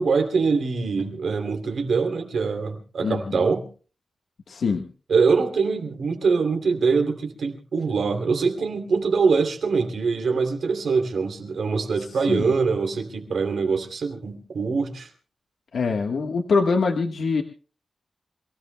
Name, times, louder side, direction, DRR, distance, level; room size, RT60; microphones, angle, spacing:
voice 1, 0.0-3.7 5.1-15.1, right 4 dB, 70° right, 4 dB, 2.9 m, -23 dB
voice 2, 3.0-3.5 4.5-4.8 12.3-12.5 15.7-17.4, left 4 dB, 70° left, 3 dB, 1.4 m, -24 dB
27.5 x 17.0 x 2.2 m, 0.38 s
wide cardioid pair, 170°, 0 cm